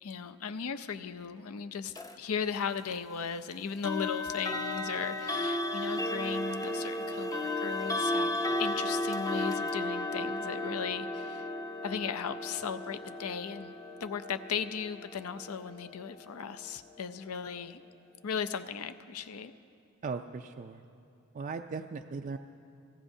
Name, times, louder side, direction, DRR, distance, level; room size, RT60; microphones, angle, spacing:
voice 1, 0.0-11.5 11.8-13.7 14.0-17.8 18.2-19.5, left 6 dB, 75° left, 11 dB, 0.5 m, -37 dB
sound 1, 1.9-2.2 3.8-16.7, left 1 dB, 15° left, 0.5 m, -34 dB
voice 2, 20.0-20.8 21.3-22.4, right 4 dB, 35° right, 5 dB, 0.3 m, -38 dB
25.0 x 18.0 x 2.7 m, 2.5 s
head